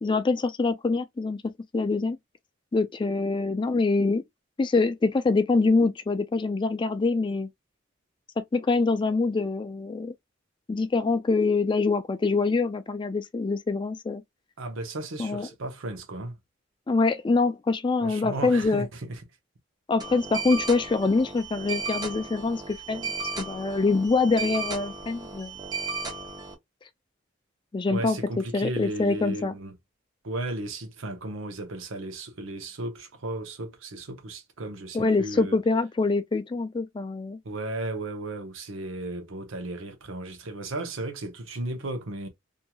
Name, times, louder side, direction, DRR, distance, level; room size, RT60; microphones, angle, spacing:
voice 1, 0.0-1.4 1.7-2.2 2.7-4.2 4.6-7.5 8.5-10.1 10.7-14.2 15.2-15.5 16.9-18.9 19.9-23.1 23.4-25.5 27.7-28.2 28.5-29.5 34.9-37.4, left 3 dB, 25° left, 0.3 m, -25 dB
voice 2, 14.6-16.4 18.0-19.2 27.9-29.8 30.2-35.6 37.4-42.3, right 2 dB, 85° right, 0.8 m, -35 dB
sound 1, 20.0-26.5, right 3 dB, 20° right, 0.6 m, -35 dB
2.9 x 2.6 x 2.2 m
head